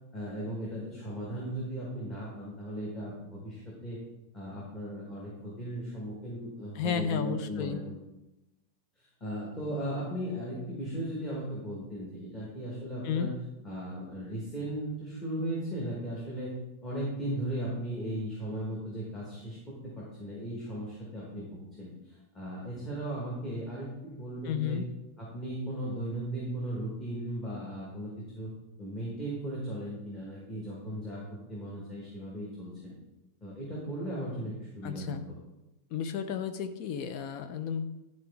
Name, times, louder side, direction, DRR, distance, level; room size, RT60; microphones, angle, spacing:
voice 1, 0.1-4.0 4.3-7.8 9.0-16.5 16.8-24.9 25.2-28.5 28.8-31.2 31.5-32.9 33.4-35.2, right 1 dB, 15° left, -6 dB, 1.4 m, -37 dB
voice 2, 6.7-7.8 13.0-13.3 24.4-24.9 34.8-35.3 35.9-37.8, left 7 dB, 40° left, 9 dB, 0.6 m, -32 dB
10.5 x 3.9 x 3.5 m, 0.96 s
supercardioid pair, 170°, 0 cm